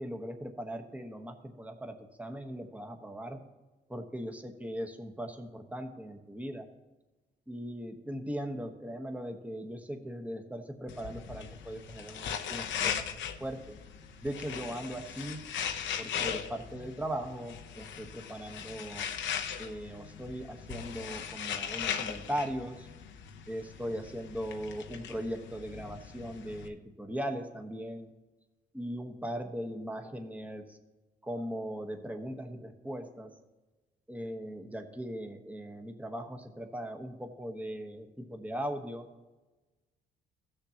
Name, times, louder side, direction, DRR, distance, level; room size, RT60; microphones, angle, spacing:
voice 1, 0.0-3.4 3.9-6.7 7.5-13.7 14.2-15.4 16.0-19.1 19.6-22.9 23.5-28.1 28.7-30.8 31.2-33.3 34.1-39.1, equal, 5° right, 4 dB, 1.1 m, -39 dB
sound 1, 10.9-26.7, left 8 dB, 70° left, 0.8 m, -39 dB
16.0 x 6.8 x 2.9 m, 1.2 s
cardioid pair, 90°, 20 cm